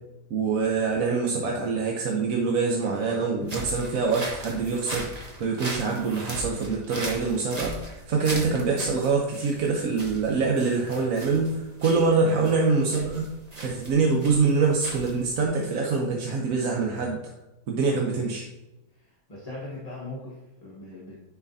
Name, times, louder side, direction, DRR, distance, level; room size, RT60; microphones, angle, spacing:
voice 1, 0.3-13.2 13.6-17.2 17.7-18.5, right 4 dB, 60° right, 0 dB, 1.1 m, -25 dB
sound 1, 3.4-15.5, right 1 dB, 25° right, 1.1 m, -38 dB
voice 2, 18.9-21.2, left 2 dB, 25° left, -5 dB, 1.1 m, -40 dB
9.9 x 4.8 x 2.7 m, 0.99 s
omnidirectional pair, 1.8 m